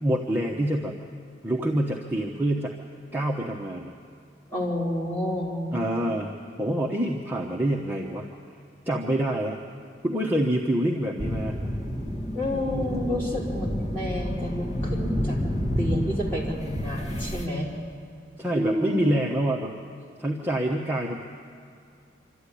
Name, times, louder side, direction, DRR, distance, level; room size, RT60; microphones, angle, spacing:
voice 1, 0.0-0.9 1.4-2.8 3.1-3.9 5.7-6.3 6.6-8.3 8.9-9.6 10.0-11.6 18.4-19.7 20.2-21.2, right 1 dB, 10° right, -1 dB, 1.0 m, -26 dB
voice 2, 4.5-5.6 12.3-15.4 15.8-17.7 18.5-19.2, left 1 dB, 10° left, -6 dB, 4.6 m, -30 dB
sound 1, 11.2-17.5, equal, 35° left, 1.7 m, -29 dB
26.5 x 13.0 x 10.0 m, 2.4 s
head